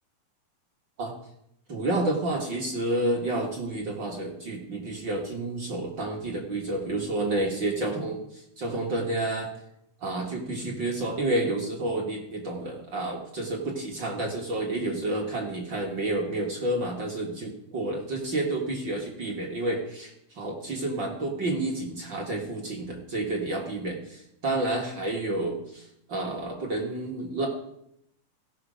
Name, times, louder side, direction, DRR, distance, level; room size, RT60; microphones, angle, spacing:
voice 1, 1.7-9.5 10.0-25.8 26.1-27.5, right 2 dB, 45° right, 0 dB, 1.6 m, -30 dB
16.0 x 6.1 x 5.0 m, 0.76 s
omnidirectional pair, 3.7 m